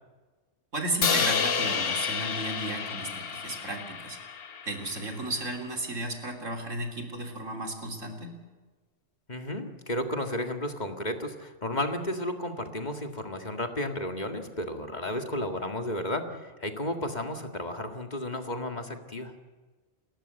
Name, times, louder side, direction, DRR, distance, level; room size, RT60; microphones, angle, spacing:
voice 1, 0.7-4.2 4.7-8.3, right 1 dB, 85° right, 3 dB, 3.7 m, -34 dB
Crash cymbal, 1.0-5.2, left 6 dB, 55° left, 1.1 m, -30 dB
voice 2, 9.3-19.3, left 1 dB, 35° left, 5 dB, 2.0 m, -33 dB
30.0 x 14.0 x 8.1 m, 1.3 s
omnidirectional pair, 1.3 m